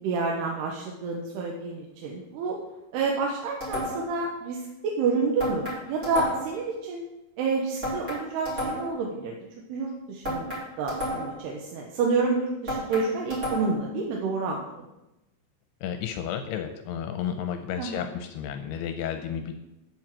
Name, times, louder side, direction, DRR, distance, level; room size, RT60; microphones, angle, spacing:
voice 1, 0.0-2.6 2.9-7.1 7.4-9.4 9.7-14.7 17.8-18.0, right 4 dB, 85° right, 0 dB, 3.1 m, -29 dB
sound 1, 3.6-4.2 5.4-6.6 7.8-9.0 10.2-11.5 12.7-13.9, equal, 15° right, 4.4 m, -32 dB
voice 2, 15.8-19.6, left 8 dB, 85° left, 7 dB, 2.7 m, -32 dB
8.8 x 7.1 x 7.6 m, 0.97 s
omnidirectional pair, 4.6 m